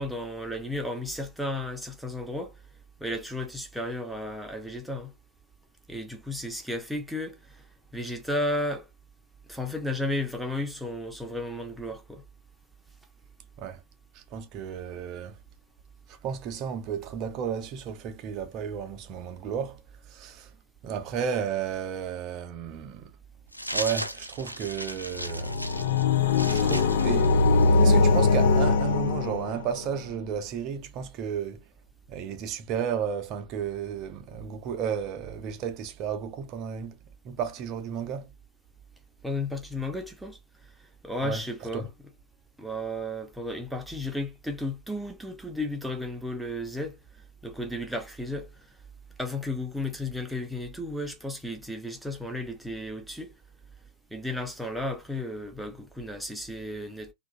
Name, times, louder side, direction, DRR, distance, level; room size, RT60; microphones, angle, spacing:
voice 1, 0.0-2.5 3.0-5.1 5.9-7.4 7.9-8.9 9.5-12.2 39.2-40.4 41.0-41.9 42.6-47.0 47.4-48.5 49.2-53.3 54.1-57.1, left 1 dB, ahead, 0.7 m, -33 dB
voice 2, 14.1-15.4 16.1-19.8 20.1-20.5 20.8-23.1 23.7-25.6 26.5-27.3 27.8-31.6 32.1-37.0 37.2-38.3 41.2-41.4 41.7-41.9, right 7 dB, 40° right, 0.6 m, -33 dB
sound 1, 23.5-27.9, equal, 90° right, 0.3 m, -36 dB
sound 2, 25.2-29.8, left 3 dB, 60° left, 0.4 m, -22 dB
2.9 x 2.4 x 2.5 m
figure-of-eight pair, 90°, 0 cm